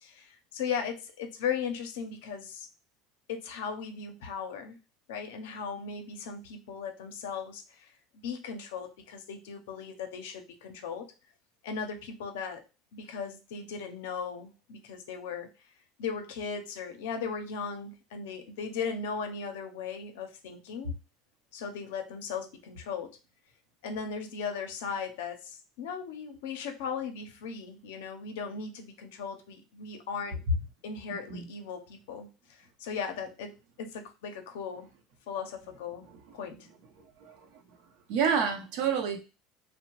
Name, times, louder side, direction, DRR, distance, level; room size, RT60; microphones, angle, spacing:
voice 1, 0.0-2.7 3.3-4.8 5.1-7.9 8.2-11.1 11.6-12.6 12.9-15.5 16.0-20.9 21.5-23.2 23.8-30.4 30.8-34.9 35.3-36.1 36.3-36.6, left 6 dB, 85° left, 6 dB, 0.5 m, -37 dB
voice 2, 38.1-39.2, right 7 dB, 70° right, 4 dB, 0.7 m, -28 dB
2.8 x 2.0 x 2.9 m, 0.31 s
supercardioid pair, 110°, 0 cm